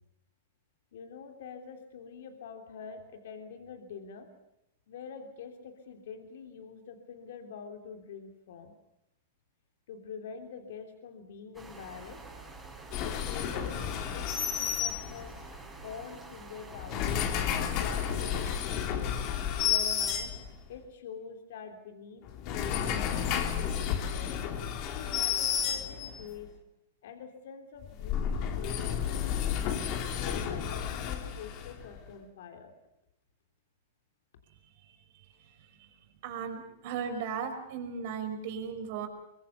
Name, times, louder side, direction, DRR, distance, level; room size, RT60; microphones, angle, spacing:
voice 1, 0.9-4.3 4.9-8.7 9.9-12.2 13.0-15.3 15.8-17.1 17.5-18.8 19.6-20.3 20.7-24.3 24.9-26.5 27.0-29.3 30.1-32.7, left 6 dB, 70° left, 6 dB, 3.2 m, -45 dB
sound 1, 11.5-18.6, right 3 dB, 5° right, 5.6 m, -48 dB
sound 2, 12.9-15.5 16.7-20.8 22.3-26.3 27.8-32.0, left 8 dB, 40° left, 3.3 m, -31 dB
voice 2, 36.2-39.1, right 6 dB, 55° right, 6 dB, 5.6 m, -36 dB
24.0 x 23.0 x 7.1 m, 0.84 s
hypercardioid pair, 140°, 0 cm